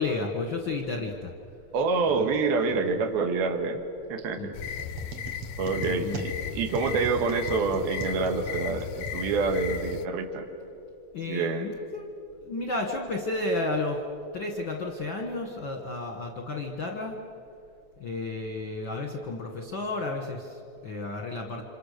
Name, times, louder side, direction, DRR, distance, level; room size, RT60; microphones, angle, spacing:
voice 1, 0.0-1.3 2.1-2.3 2.7-2.8 4.4-4.5 5.7-6.3 11.1-14.0 14.3-17.2 18.0-21.6, left 2 dB, 50° left, 1 dB, 1.5 m, -32 dB
voice 2, 1.7-3.8 4.1-4.5 5.6-10.5 11.3-11.7, right 4 dB, 75° right, 5 dB, 3.4 m, -27 dB
sound 1, 4.5-10.1, left 9 dB, 80° left, 1.9 m, -36 dB
sound 2, 4.6-9.7, right 4 dB, 55° right, 2.1 m, -41 dB
28.5 x 26.5 x 6.8 m, 2.8 s
omnidirectional pair, 4.5 m